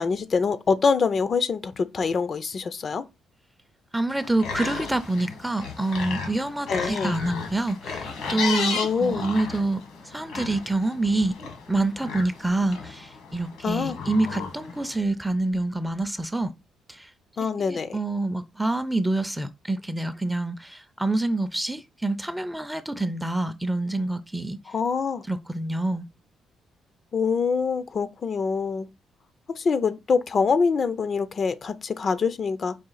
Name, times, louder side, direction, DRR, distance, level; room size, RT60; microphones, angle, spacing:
voice 1, 0.0-3.0 6.7-7.1 8.8-9.2 13.6-14.0 17.4-18.0 24.7-25.2 27.1-28.9 29.6-32.8, left 5 dB, 45° left, 0.4 m, -25 dB
voice 2, 3.9-11.4 11.7-16.5 16.9-17.1 17.6-24.6 25.3-26.1, right 2 dB, 5° right, 0.5 m, -27 dB
sound 1, 4.1-15.0, left 5 dB, 90° left, 1.6 m, -34 dB
4.9 x 2.4 x 3.9 m
cardioid pair, 90°, 0 cm